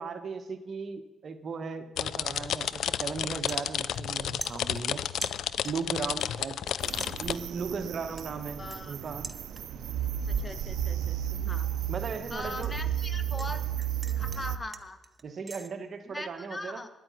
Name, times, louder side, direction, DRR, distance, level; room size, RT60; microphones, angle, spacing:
voice 1, 0.0-5.0 5.6-6.6 7.2-9.3 11.9-12.7 15.2-16.8, right 5 dB, 50° right, 8 dB, 1.1 m, -37 dB
sound 1, 2.0-7.4, left 9 dB, 70° left, 0.4 m, -32 dB
sound 2, 2.6-2.8 3.1-4.1 4.4-5.9 6.2-6.7 7.0-9.9 10.3-10.6 11.0-13.5 13.8-15.7, right 3 dB, 25° right, 0.8 m, -44 dB
sound 3, 6.8-14.6, right 10 dB, 75° right, 0.5 m, -33 dB
voice 2, 8.6-8.9 10.4-11.7 12.3-13.9 14.2-15.0 16.0-16.9, left 2 dB, 20° left, 10 dB, 1.0 m, -40 dB
10.0 x 8.8 x 9.4 m, 1.2 s
cardioid pair, 95°, 0 cm